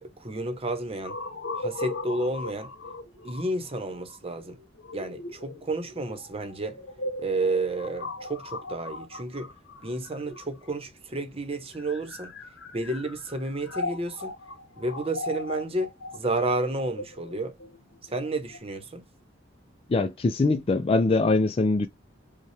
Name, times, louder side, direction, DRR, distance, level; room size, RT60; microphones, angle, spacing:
voice 1, 0.0-1.2 1.6-2.7 3.2-4.6 4.9-6.8 7.2-9.5 9.8-12.3 12.7-14.3 14.8-17.5 18.0-19.0, right 2 dB, 30° right, 0.9 m, -31 dB
sound 1, 1.0-10.9 11.6-18.6, left 2 dB, 70° left, 1.1 m, -38 dB
voice 2, 19.9-21.9, left 3 dB, 30° left, 0.4 m, -22 dB
5.4 x 2.3 x 3.2 m
head